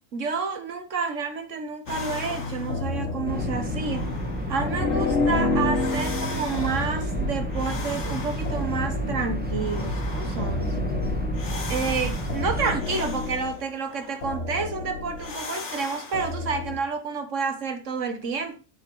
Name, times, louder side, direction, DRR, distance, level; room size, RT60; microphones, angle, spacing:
voice 1, 0.1-4.1 4.5-10.8 11.7-18.6, right 5 dB, 70° right, 1.6 m, -29 dB
sound 1, 1.9-16.8, left 3 dB, 65° left, 1.5 m, -31 dB
sound 2, 3.3-12.8, equal, 10° right, 1.2 m, -30 dB
7.4 x 6.7 x 4.6 m
omnidirectional pair, 1.3 m